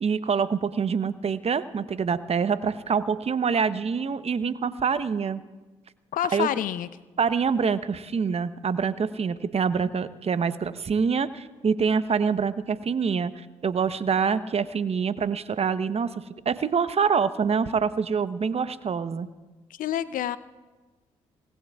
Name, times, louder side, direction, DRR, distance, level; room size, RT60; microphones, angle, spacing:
voice 1, 0.0-5.4 6.3-6.5 7.2-19.3, right 6 dB, 40° right, 13 dB, 0.9 m, -26 dB
voice 2, 6.1-6.9 19.7-20.4, left 11 dB, 65° left, 16 dB, 0.7 m, -28 dB
25.5 x 19.5 x 2.4 m, 1.2 s
hypercardioid pair, 45°, 15 cm